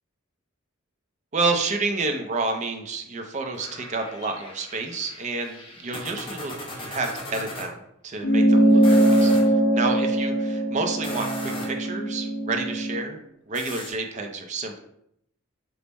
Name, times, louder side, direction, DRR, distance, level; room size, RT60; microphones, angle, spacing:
voice 1, 1.3-9.4 9.7-14.8, right 3 dB, 35° right, 4 dB, 0.4 m, -29 dB
sound 1, 3.5-7.7 8.7-9.5 10.9-11.9 13.5-13.9, equal, 25° left, 0.7 m, -37 dB
sound 2, 8.2-13.0, right 1 dB, 65° left, 0.5 m, -21 dB
3.4 x 2.1 x 3.9 m, 0.75 s
head